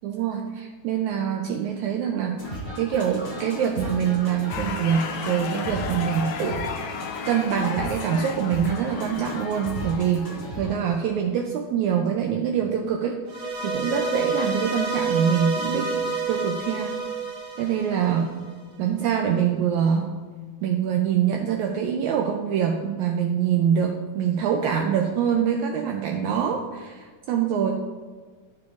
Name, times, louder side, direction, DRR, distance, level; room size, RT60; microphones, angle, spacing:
voice 1, 0.0-2.4 2.8-6.7 7.3-10.3 10.6-13.2 13.6-17.0 17.6-18.4 18.8-20.1 20.6-27.7, right 8 dB, 80° right, 2 dB, 1.7 m, -24 dB
sound 1, 2.4-10.8, left 1 dB, 20° left, 1.6 m, -35 dB
sound 2, 4.5-10.6, left 6 dB, 80° left, 2.2 m, -35 dB
sound 3, 13.3-18.5, right 3 dB, 60° right, 2.2 m, -29 dB
13.0 x 6.0 x 2.5 m, 1.5 s
omnidirectional pair, 3.8 m